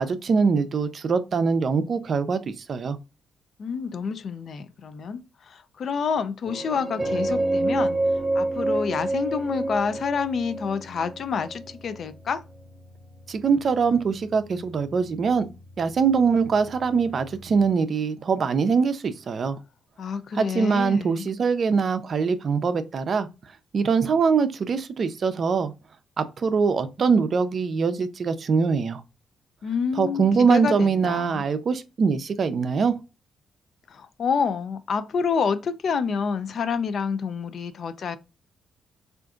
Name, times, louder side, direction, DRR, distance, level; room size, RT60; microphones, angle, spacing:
voice 1, 0.0-3.0 13.3-15.5 15.8-19.6 20.3-23.3 23.7-25.7 26.2-29.0 30.0-33.0, right 5 dB, 55° right, 0.4 m, -23 dB
voice 2, 3.6-8.0 8.3-12.4 20.0-21.3 29.6-31.4 33.9-38.2, left 6 dB, 60° left, 0.4 m, -28 dB
sound 1, 6.5-17.7, right 2 dB, 5° right, 0.7 m, -30 dB
3.6 x 2.5 x 2.3 m
cardioid pair, 70°, 0 cm